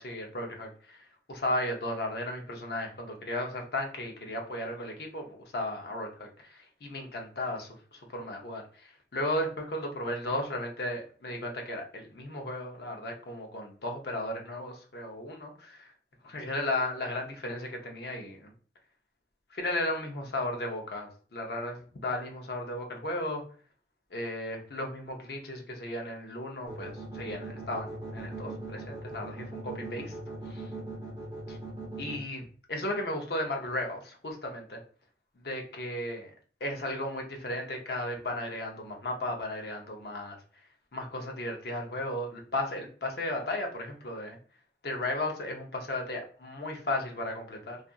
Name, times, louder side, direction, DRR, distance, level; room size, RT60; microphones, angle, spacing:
voice 1, 0.0-15.9 16.2-18.5 19.5-23.4 24.1-30.2 30.5-30.7 31.5-31.6 32.0-34.8 35.4-36.3 36.6-40.4 40.9-44.4 44.8-47.8, left 1 dB, 65° left, 2 dB, 0.6 m, -35 dB
sound 1, 26.7-32.2, right 3 dB, 25° right, 0.7 m, -40 dB
2.7 x 2.4 x 2.2 m, 0.41 s
head